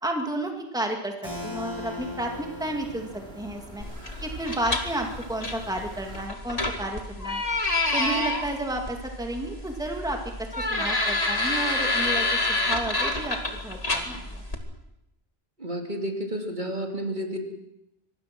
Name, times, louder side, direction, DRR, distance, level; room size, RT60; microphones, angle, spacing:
voice 1, 0.0-3.1 3.4-3.8 4.2-7.4 7.9-10.2 10.6-13.4 13.6-14.4, right 1 dB, 5° right, 2 dB, 2.4 m, -32 dB
Keyboard (musical), 1.2-6.8, left 2 dB, 25° right, 8.1 m, -42 dB
sound 1, 1.2-6.3, right 1 dB, 70° right, 3.4 m, -44 dB
sound 2, 3.8-14.6, left 2 dB, 35° left, 2.4 m, -28 dB
voice 2, 15.6-17.4, equal, 50° right, 2 dB, 2.9 m, -31 dB
25.0 x 20.0 x 6.1 m, 0.85 s
omnidirectional pair, 1.0 m